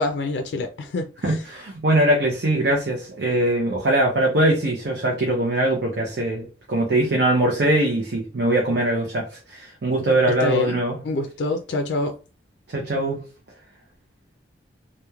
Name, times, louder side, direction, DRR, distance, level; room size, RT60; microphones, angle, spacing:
voice 1, 0.0-1.4 10.4-10.8 11.0-12.2, left 3 dB, 70° left, 0.3 m, -26 dB
voice 2, 1.2-11.0 12.7-13.2, right 1 dB, 60° right, 0.5 m, -22 dB
2.9 x 2.0 x 2.3 m
head